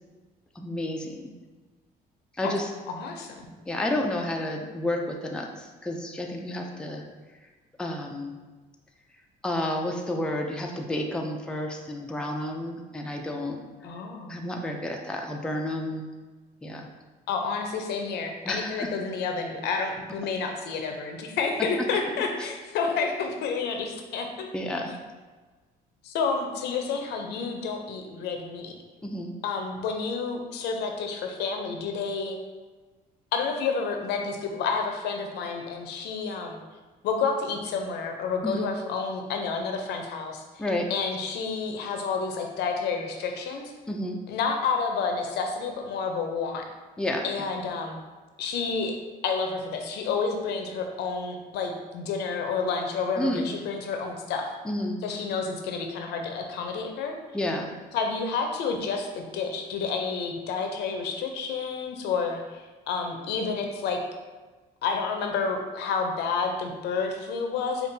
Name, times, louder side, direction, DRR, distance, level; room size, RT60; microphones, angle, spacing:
voice 1, 0.6-1.3 2.4-2.7 3.7-7.0 7.8-8.3 9.4-13.6 14.3-16.1 16.6-16.9 18.5-18.9 22.4-22.5 24.5-24.9 29.0-29.3 38.4-38.7 40.6-40.9 43.9-44.2 47.0-47.2 53.2-53.4 54.6-55.0 57.3-57.7, left 1 dB, 5° left, 1 dB, 0.4 m, -30 dB
voice 2, 2.9-3.5 13.8-14.4 17.3-24.5 26.0-28.7 29.4-32.4 33.3-36.6 37.0-40.6 40.9-43.7 44.3-46.7 47.2-48.0 48.4-49.0 49.2-54.5 55.0-57.1 57.9-64.0 64.8-67.9, left 5 dB, 80° left, 4 dB, 0.6 m, -30 dB
5.1 x 2.4 x 2.7 m, 1.3 s
cardioid pair, 110°, 17 cm